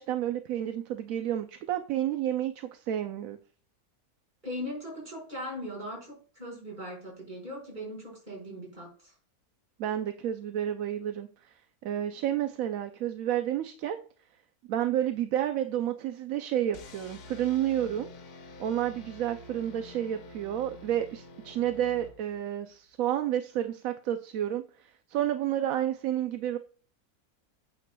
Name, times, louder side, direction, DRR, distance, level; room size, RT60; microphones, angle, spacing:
voice 1, 0.0-3.4 9.8-11.5 11.8-14.0 14.7-18.1 18.6-26.6, right 11 dB, 70° right, 8 dB, 1.0 m, -30 dB
voice 2, 4.4-9.1, left 1 dB, 30° right, -3 dB, 4.7 m, -39 dB
sound 1, 16.7-22.6, left 2 dB, 75° left, 1.4 m, -48 dB
9.2 x 8.5 x 2.2 m, 0.41 s
omnidirectional pair, 1.6 m